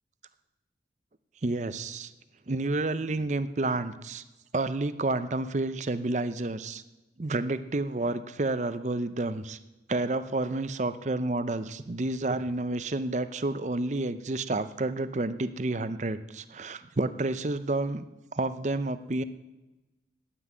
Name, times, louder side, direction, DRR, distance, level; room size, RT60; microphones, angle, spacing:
voice 1, 1.4-2.1 2.5-4.2 4.5-6.8 7.2-9.6 9.9-18.0 18.3-19.2, right 2 dB, 40° right, 13 dB, 0.6 m, -30 dB
9.9 x 9.3 x 9.4 m, 1.1 s
head